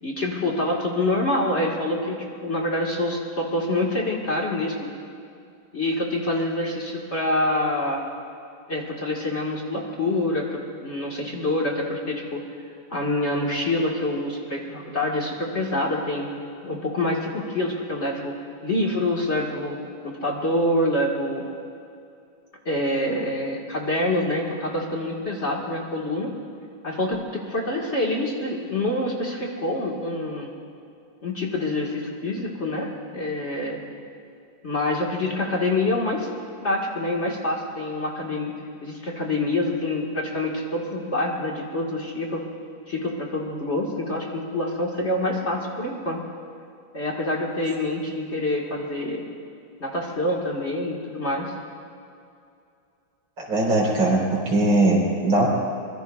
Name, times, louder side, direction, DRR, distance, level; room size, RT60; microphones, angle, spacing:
voice 1, 0.0-4.9 5.7-8.0 8.7-12.4 12.9-16.3 16.6-18.3 18.6-21.4 22.7-26.3 26.8-30.5 31.2-33.8 34.6-36.3 36.6-38.5 38.8-42.4 42.9-46.2 46.9-49.2 49.8-51.5, left 1 dB, 35° left, -2 dB, 1.7 m, -26 dB
voice 2, 53.4-55.5, right 2 dB, 75° right, -3 dB, 4.6 m, -20 dB
25.0 x 22.0 x 2.4 m, 2.5 s
omnidirectional pair, 2.2 m